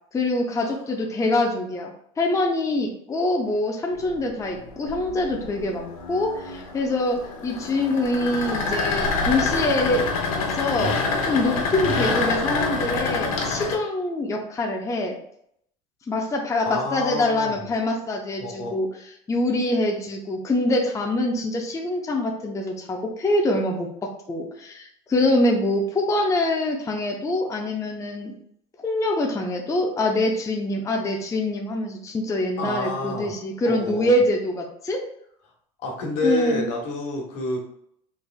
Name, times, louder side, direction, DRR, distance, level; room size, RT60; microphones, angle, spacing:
voice 1, 0.1-10.9 11.2-15.1 16.1-18.9 19.3-28.3 28.8-35.0 36.2-36.7, left 2 dB, 15° left, 2 dB, 0.5 m, -25 dB
sound 1, 3.9-13.7, left 4 dB, 90° left, 0.7 m, -27 dB
voice 2, 16.7-17.5 18.4-18.7 32.6-33.3 33.6-34.1 35.8-37.6, left 1 dB, 70° left, 0 dB, 1.2 m, -28 dB
3.3 x 3.2 x 2.4 m, 0.71 s
supercardioid pair, 95°, 18 cm